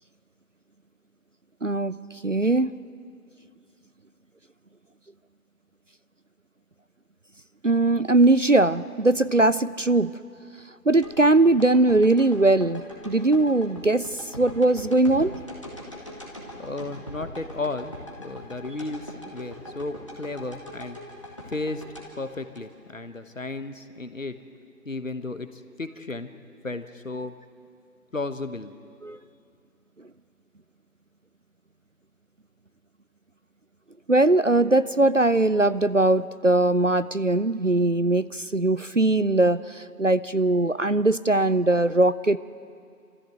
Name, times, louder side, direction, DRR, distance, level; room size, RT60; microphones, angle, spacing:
voice 1, 1.6-2.0 2.2-2.7 7.6-10.1 10.9-14.1 14.4-15.3 29.0-29.2 34.1-42.4, right 2 dB, 55° right, 16 dB, 0.5 m, -20 dB
sound 1, 11.0-23.2 23.6-23.7, left 1 dB, 20° left, 1.9 m, -41 dB
voice 2, 16.6-21.0 21.5-24.4 24.8-26.3 26.6-27.3 28.1-28.7, left 2 dB, 55° left, 10 dB, 1.3 m, -34 dB
27.0 x 14.5 x 7.7 m, 2.4 s
figure-of-eight pair, 170°, 47 cm